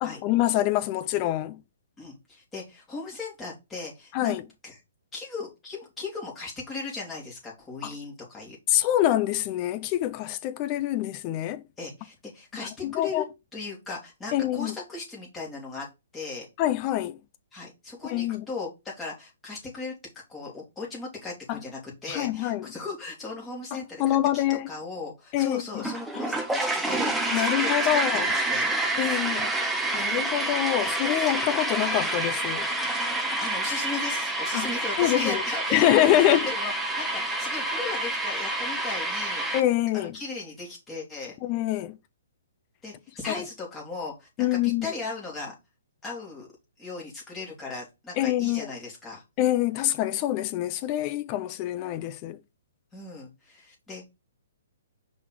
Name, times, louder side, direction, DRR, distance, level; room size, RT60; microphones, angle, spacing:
voice 1, 0.0-1.6 4.1-4.4 7.8-7.9 8.7-11.6 12.6-13.2 14.3-14.7 16.6-17.2 18.1-18.4 21.5-21.6 22.1-22.7 23.7-24.7 25.3-25.9 27.3-28.3 29.0-29.5 29.9-32.7 34.5-34.7 35.0-35.4 35.7-36.5 39.5-40.2 41.4-42.0 43.3-43.4 44.4-44.9 48.2-48.7 49.4-52.4, left 13 dB, 35° left, 0.7 m, -25 dB
voice 2, 2.0-4.4 4.6-4.8 5.1-8.6 11.8-13.2 13.5-15.9 16.1-16.5 17.5-20.0 20.3-27.1 27.5-28.7 32.8-39.6 39.9-41.4 42.8-45.5 46.0-46.5 46.8-49.2 52.9-54.0, left 3 dB, 15° left, 3.4 m, -37 dB
sound 1, 25.8-39.6, right 2 dB, 5° right, 0.9 m, -28 dB
5.4 x 4.1 x 4.7 m
hypercardioid pair, 130°, 0 cm